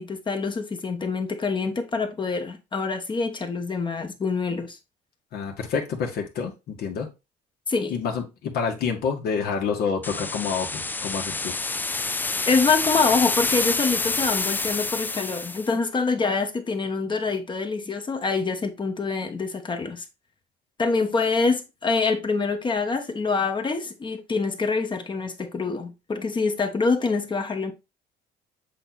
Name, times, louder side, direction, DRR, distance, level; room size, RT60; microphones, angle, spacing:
voice 1, 0.0-4.8 7.7-7.9 12.5-20.0 20.8-27.7, left 4 dB, 30° left, 1.1 m, -25 dB
voice 2, 5.3-7.1 7.9-11.5, left 6 dB, 70° left, 1.8 m, -28 dB
sound 1, 10.0-15.7, left 3 dB, 10° left, 0.3 m, -27 dB
7.6 x 3.1 x 4.0 m
cardioid pair, 110°, 17 cm